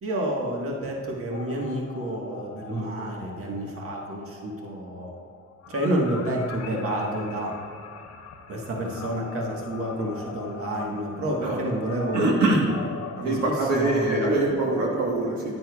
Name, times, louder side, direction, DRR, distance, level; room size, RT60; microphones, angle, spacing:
voice 1, 0.0-5.1 5.7-7.5 8.5-12.3 13.2-14.3, right 1 dB, 45° right, -1 dB, 1.5 m, -29 dB
sound 1, 1.3-14.5, left 5 dB, 55° left, 0.8 m, -41 dB
voice 2, 12.1-12.7 13.2-15.6, right 2 dB, 70° right, -3 dB, 1.4 m, -23 dB
9.9 x 9.8 x 2.4 m, 2.2 s
cardioid pair, 90°, 30 cm